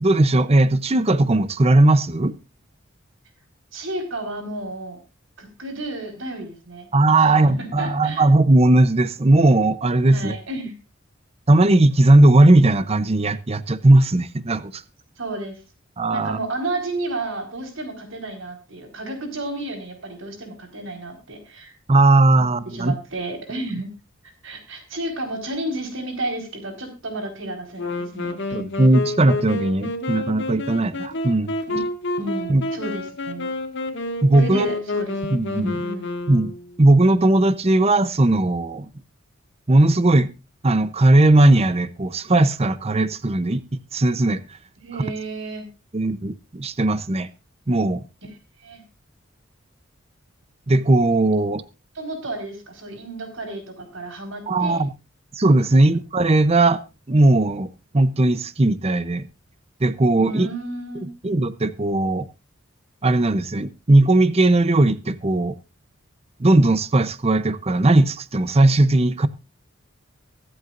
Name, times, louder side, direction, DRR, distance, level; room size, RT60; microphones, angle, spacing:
voice 1, 0.0-2.3 6.9-10.4 11.5-14.8 16.0-16.4 21.9-23.0 28.5-31.5 32.5-32.6 34.2-34.7 35.3-35.7 36.3-36.5 36.8-38.9 39.7-40.3 40.6-43.6 43.9-44.4 44.9-45.0 45.9-47.3 47.7-48.0 50.7-51.6 54.5-54.9 55.3-56.8 57.1-59.3 59.8-60.5 61.2-62.3 63.0-65.5 66.4-69.3, right 2 dB, 30° right, 0.7 m, -17 dB
voice 2, 3.7-5.0 5.4-6.9 7.2-7.3 7.8-8.2 10.1-10.7 15.2-15.6 16.1-21.7 22.3-23.9 24.2-28.6 31.7-31.8 32.2-33.5 34.4-36.1 44.8-45.7 48.6-48.8 51.9-54.8 55.7-55.9 60.2-61.1, right 2 dB, 70° right, 4.4 m, -32 dB
Wind instrument woodwind instrument, 27.8-36.8, left 2 dB, 60° left, 1.9 m, -29 dB
24.0 x 8.0 x 2.5 m
head